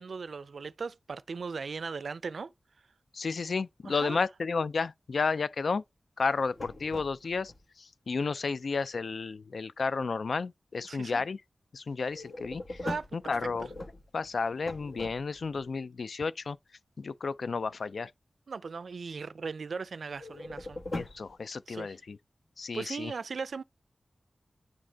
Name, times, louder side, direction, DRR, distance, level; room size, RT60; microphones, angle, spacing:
voice 1, 0.0-2.5 3.8-4.2 10.9-11.2 12.8-13.4 18.5-20.8 21.7-22.0 22.7-23.6, right 5 dB, 85° right, 0.3 m, -38 dB
voice 2, 3.1-5.8 6.2-7.5 7.8-11.4 11.7-12.9 13.1-13.7 14.1-16.6 17.0-18.1 20.9-22.2 22.6-23.1, left 4 dB, 75° left, 0.3 m, -32 dB
sound 1, 6.3-7.6 12.1-15.6 20.1-21.4, left 2 dB, 50° left, 1.2 m, -41 dB
9.5 x 3.7 x 3.3 m
wide cardioid pair, 100°, 0 cm